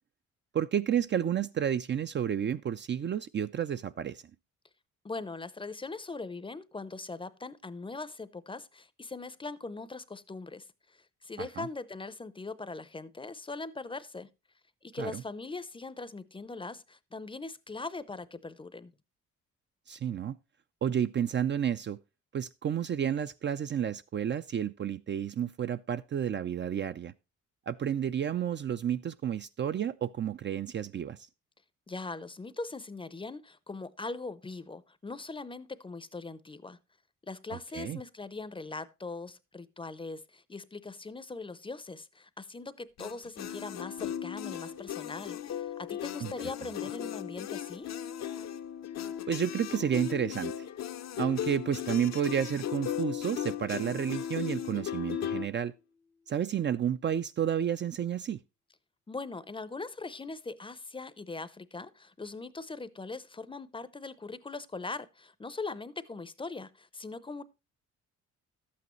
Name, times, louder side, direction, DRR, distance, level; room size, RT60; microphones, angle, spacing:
voice 1, 0.5-4.2 11.4-11.7 15.0-15.2 19.9-20.4 20.8-22.0 22.3-27.1 27.7-31.2 37.5-38.0 46.2-46.3 49.3-50.7 51.2-55.7 56.3-58.4, right 9 dB, 40° right, 0.4 m, -31 dB
voice 2, 5.0-14.3 14.8-18.9 31.9-36.8 37.3-47.9 59.1-67.4, left 3 dB, 15° left, 0.6 m, -41 dB
sound 1, 43.0-55.5, left 10 dB, 60° left, 0.7 m, -37 dB
Mallet percussion, 55.0-58.3, left 4 dB, 90° right, 5.4 m, -71 dB
12.0 x 8.5 x 3.1 m
cardioid pair, 90°, 30 cm